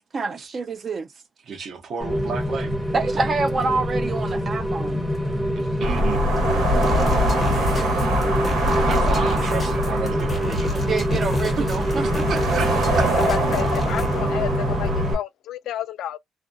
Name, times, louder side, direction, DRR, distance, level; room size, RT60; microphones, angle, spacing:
voice 1, 0.1-1.1 2.9-5.0 10.9-12.2, right 4 dB, 35° right, 0.3 m, -26 dB
voice 2, 1.4-2.7 5.8-6.2 8.8-10.9 11.6-11.7 11.9-12.7 13.0-13.1, right 5 dB, 50° right, 0.8 m, -31 dB
Rain, 2.0-15.1, equal, 10° right, 0.7 m, -26 dB
sound 1, 5.8-15.2, right 1 dB, 70° right, 1.2 m, -24 dB
sound 2, 6.8-14.2, left 3 dB, 25° left, 0.5 m, -32 dB
voice 3, 13.1-16.2, left 12 dB, 80° left, 0.3 m, -31 dB
2.4 x 2.2 x 2.5 m
cardioid pair, 155°, 0 cm